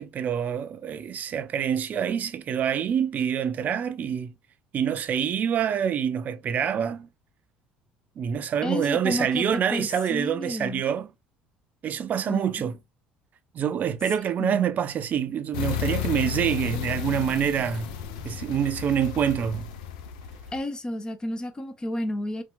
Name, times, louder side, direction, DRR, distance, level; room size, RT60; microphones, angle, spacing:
voice 1, 0.0-4.3 4.7-7.1 8.2-11.1 11.8-12.8 13.5-17.9 18.2-19.7, right 8 dB, 45° right, 0.4 m, -26 dB
voice 2, 8.6-10.8 12.3-12.4 14.4-14.6 20.5-22.4, left 1 dB, 20° left, 0.5 m, -31 dB
sound 1, 15.5-20.6, left 11 dB, 85° left, 0.4 m, -33 dB
2.8 x 2.2 x 2.5 m
hypercardioid pair, 75°, 4 cm